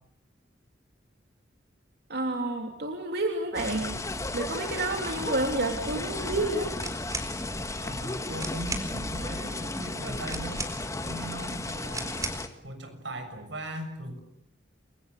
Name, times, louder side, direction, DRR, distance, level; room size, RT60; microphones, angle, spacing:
voice 1, 2.1-3.9 4.3-6.7, right 2 dB, 60° right, 3 dB, 3.1 m, -29 dB
sound 1, 3.5-12.5, left 2 dB, 15° left, 1.6 m, -34 dB
sound 2, 6.7-7.3 8.1-8.2 8.4-8.9 10.3-11.0 11.9-12.5, right 3 dB, 20° right, 4.1 m, -36 dB
voice 2, 7.8-10.6 11.0-12.4 12.6-14.2, right 1 dB, 85° right, 7 dB, 6.9 m, -39 dB
30.0 x 23.5 x 8.5 m, 0.73 s
head